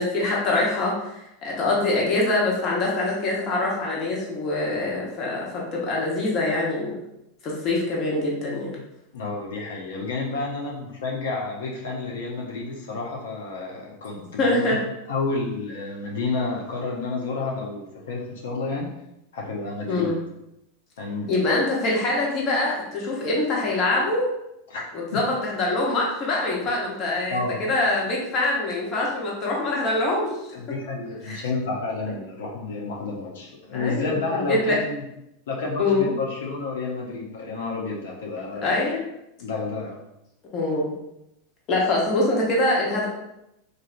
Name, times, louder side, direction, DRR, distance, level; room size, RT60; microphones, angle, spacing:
voice 1, 0.0-7.0 7.4-8.8 14.4-14.8 19.9-20.2 21.3-24.3 24.9-30.3 31.2-31.5 33.7-34.8 35.8-36.1 38.6-39.0 40.5-40.9 41.7-43.1, left 2 dB, 35° left, -3 dB, 0.9 m, -24 dB
voice 2, 9.1-14.8 15.1-18.9 19.3-20.1 21.0-21.3 24.7-24.9 25.1-25.2 27.3-27.6 30.5-35.1 35.5-38.8 39.4-40.0, left 3 dB, 85° left, -2 dB, 0.6 m, -30 dB
3.2 x 2.6 x 2.5 m, 0.85 s
supercardioid pair, 135°, 0 cm